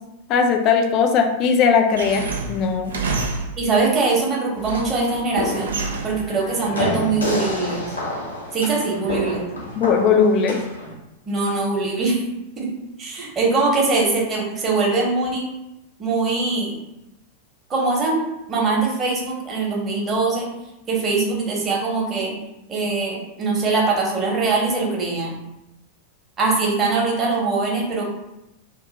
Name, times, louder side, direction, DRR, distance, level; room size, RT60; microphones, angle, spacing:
voice 1, 0.3-2.9 9.7-10.6, left 6 dB, 35° left, 5 dB, 0.5 m, -18 dB
sound 1, 1.9-3.8 4.3-5.1 5.6-6.3, right 4 dB, 65° right, 0.4 m, -28 dB
voice 2, 3.6-5.7 6.0-8.0 8.5-9.5 11.2-12.2 12.6-12.7 13.0-15.5 16.0-16.7 17.7-20.5 20.9-22.4 22.7-25.4 26.4-28.0, right 3 dB, 25° right, -2 dB, 1.0 m, -22 dB
sound 2, 5.0-10.9, left 2 dB, 80° left, 0.7 m, -29 dB
2.6 x 2.5 x 4.0 m, 0.92 s
figure-of-eight pair, 90°, 0 cm